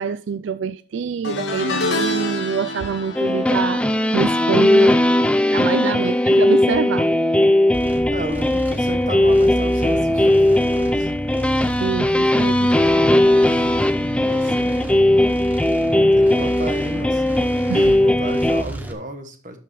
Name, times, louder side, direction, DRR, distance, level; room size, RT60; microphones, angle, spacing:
voice 1, 0.0-3.8 4.1-5.1 5.5-7.1 11.8-12.7 17.7-18.0, right 6 dB, 80° right, 0.4 m, -25 dB
sound 1, 1.2-6.6 6.9-7.3 8.5-8.6, left 2 dB, 70° left, 2.5 m, -29 dB
sound 2, 3.2-18.6, left 1 dB, 5° left, 0.4 m, -18 dB
sound 3, 7.7-18.9, right 1 dB, 10° right, 0.8 m, -31 dB
voice 2, 8.1-11.1 14.3-14.8 16.1-17.4 18.0-19.6, right 1 dB, 40° right, 1.2 m, -33 dB
12.0 x 5.7 x 3.0 m
head